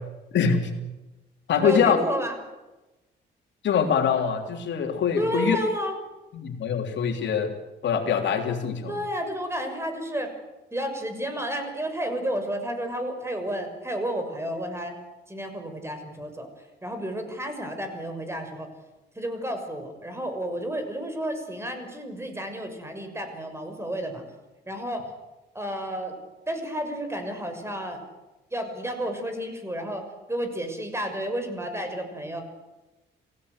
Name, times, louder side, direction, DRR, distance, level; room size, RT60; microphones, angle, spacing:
voice 1, 0.3-0.7 1.5-2.0 3.6-5.6 6.3-7.5 7.8-8.9, left 7 dB, 65° left, 3 dB, 3.4 m, -24 dB
voice 2, 1.5-2.3 5.2-5.9 8.9-10.3 10.7-14.9 15.3-16.5 16.8-18.7 19.1-24.3 24.7-25.0 25.5-26.2 26.5-28.0 28.5-30.0 30.3-32.4, right 1 dB, 15° right, 6 dB, 6.2 m, -31 dB
28.0 x 16.5 x 8.2 m, 1.1 s
cardioid pair, 90°, 20 cm